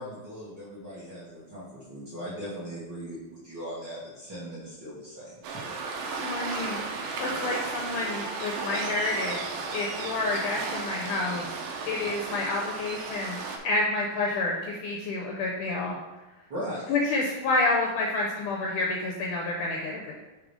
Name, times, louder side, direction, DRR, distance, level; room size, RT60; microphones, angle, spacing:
voice 1, 0.0-5.4 16.5-16.9, equal, 35° right, -10 dB, 2.1 m, -39 dB
Waves surf, 5.4-13.6, right 4 dB, 75° right, 2.5 m, -34 dB
voice 2, 6.2-6.8 7.2-13.4 13.6-16.0 16.9-20.2, left 2 dB, 75° left, -1 dB, 1.9 m, -29 dB
6.5 x 3.9 x 4.9 m, 1.1 s
omnidirectional pair, 4.2 m